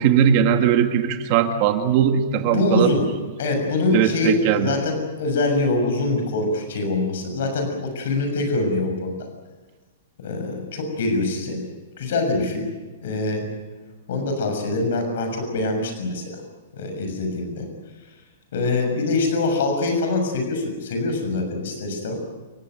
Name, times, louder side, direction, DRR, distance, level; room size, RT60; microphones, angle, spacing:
voice 1, 0.0-2.9 3.9-4.7, right 9 dB, 30° right, 6 dB, 1.8 m, -19 dB
voice 2, 2.4-3.1 3.4-9.3 10.2-11.6 12.0-12.7 13.0-13.5 14.1-16.4 16.7-17.7 18.5-22.1, left 2 dB, 55° left, 5 dB, 6.6 m, -24 dB
29.5 x 16.0 x 9.3 m, 1.3 s
supercardioid pair, 180°, 0 cm